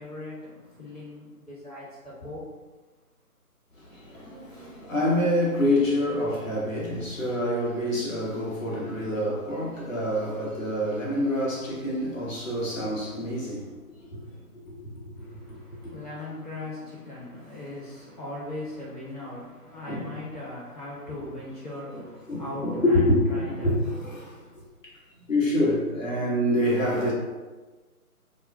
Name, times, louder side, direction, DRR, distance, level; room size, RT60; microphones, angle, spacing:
voice 1, 0.0-2.4 15.2-23.7 24.2-24.6, left 2 dB, 25° left, -12 dB, 0.8 m, -39 dB
voice 2, 3.8-13.7 14.1-14.2 14.7-14.9 15.2-15.3 15.8-15.9 19.9-20.2 21.9-24.3 25.3-27.1, left 1 dB, 60° left, -5 dB, 1.0 m, -26 dB
2.4 x 2.1 x 3.3 m, 1.3 s
figure-of-eight pair, 150°, 45 cm